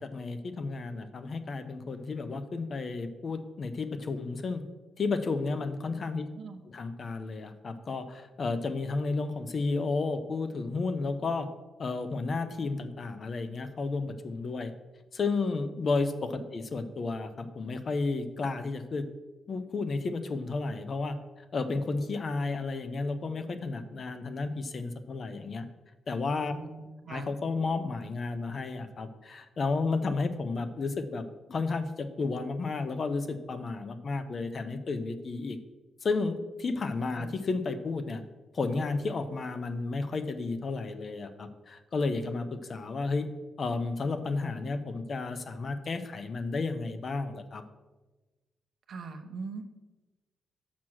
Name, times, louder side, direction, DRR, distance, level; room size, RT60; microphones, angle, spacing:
voice 1, 0.0-4.6 5.0-6.3 6.7-11.5 11.8-14.7 15.1-19.0 19.5-21.1 21.5-25.7 26.1-26.5 27.1-35.6 36.0-38.2 38.5-43.3 43.6-47.6, left 3 dB, 40° left, 10 dB, 0.6 m, -32 dB
voice 2, 26.6-27.3 37.1-37.3 48.9-49.6, right 4 dB, 55° right, 6 dB, 0.9 m, -41 dB
6.2 x 5.9 x 6.1 m, 1.2 s
wide cardioid pair, 150°, 0 cm